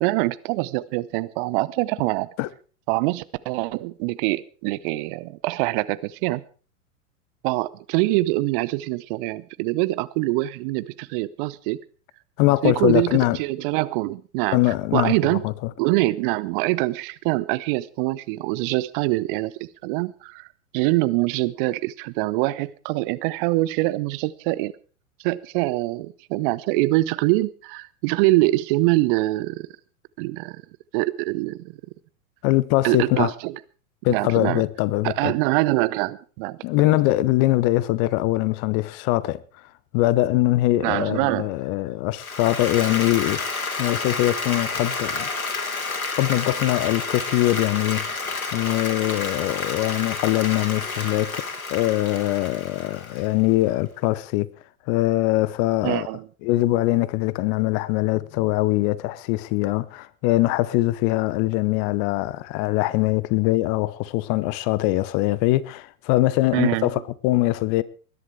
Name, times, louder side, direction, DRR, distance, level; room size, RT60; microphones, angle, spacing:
voice 1, 0.0-2.3 2.9-6.4 7.4-11.8 12.6-14.6 14.9-15.4 15.8-19.5 19.8-20.5 20.7-24.7 25.2-29.7 30.2-30.6 30.9-31.7 32.8-33.6 34.1-34.6 35.0-36.6 36.8-37.0 40.8-41.5 55.8-56.2 66.5-66.9, right 19 dB, 40° right, 0.8 m, -24 dB
voice 2, 12.4-13.4 14.5-15.7 32.4-33.3 34.0-35.3 36.6-39.4 39.9-45.3 46.2-51.4 51.7-54.5 54.9-56.1 56.4-67.8, left 17 dB, 35° left, 0.9 m, -22 dB
Applause, 42.2-53.5, left 4 dB, 80° left, 2.9 m, -30 dB
20.5 x 11.0 x 4.7 m
figure-of-eight pair, 95°, 42 cm